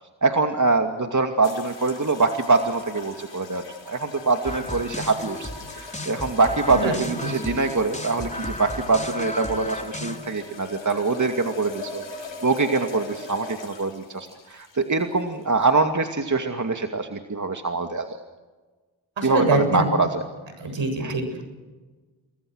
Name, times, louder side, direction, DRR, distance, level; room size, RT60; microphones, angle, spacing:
voice 1, 0.2-18.2 19.2-20.2 21.0-21.1, right 3 dB, 35° right, 5 dB, 2.5 m, -24 dB
sound 1, 1.4-15.7, left 3 dB, 60° left, 6.5 m, -41 dB
sound 2, 4.4-10.2, left 1 dB, 15° left, 4.0 m, -34 dB
voice 2, 19.2-19.9 20.6-21.2, right 3 dB, 65° right, 7 dB, 7.5 m, -24 dB
29.0 x 21.5 x 6.5 m, 1.3 s
supercardioid pair, 40°, 48 cm